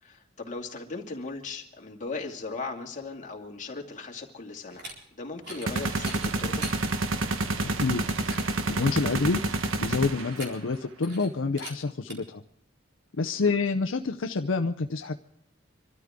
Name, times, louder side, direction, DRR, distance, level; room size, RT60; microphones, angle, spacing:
voice 1, 0.0-6.7 13.3-13.5, left 3 dB, 40° left, 0 dB, 2.3 m, -38 dB
sound 1, 4.7-4.9 5.4-5.7 6.0-6.8 7.3-7.4 7.8-7.9 8.2-8.5 10.1-10.8 11.0-11.3 11.6-11.7 12.1-12.2, right 2 dB, 60° right, 4.2 m, -41 dB
sound 2, 5.7-10.5, right 2 dB, 85° right, 1.2 m, -29 dB
voice 2, 8.7-9.4 9.8-12.4 13.2-15.1, left 4 dB, 70° left, 5 dB, 0.7 m, -27 dB
26.0 x 13.0 x 3.7 m, 0.76 s
head